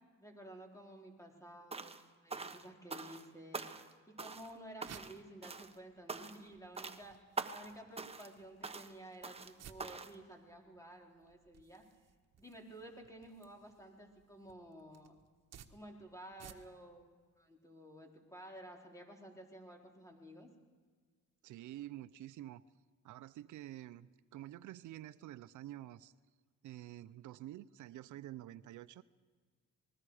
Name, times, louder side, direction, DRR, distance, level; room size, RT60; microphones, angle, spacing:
voice 1, 0.2-3.8 4.2-7.2 7.5-11.8 12.4-15.1 15.7-17.1 17.4-20.5, right 1 dB, 10° left, 1 dB, 4.2 m, -53 dB
sound 1, 1.7-2.0 2.3-3.3 3.5-4.5 4.8-5.2 5.4-5.7 6.1-6.5 6.8-7.0 7.4-7.7 8.0-8.3 8.6-8.9 9.2-9.5 9.8-10.1, right 4 dB, 20° right, 1.3 m, -44 dB
sound 2, 4.2-17.0, right 8 dB, 60° right, 1.4 m, -61 dB
voice 2, 21.4-22.6 23.0-26.1 26.6-29.0, right 14 dB, 75° right, 14 dB, 0.6 m, -49 dB
27.5 x 20.5 x 4.9 m, 1.5 s
cardioid pair, 90°, 30 cm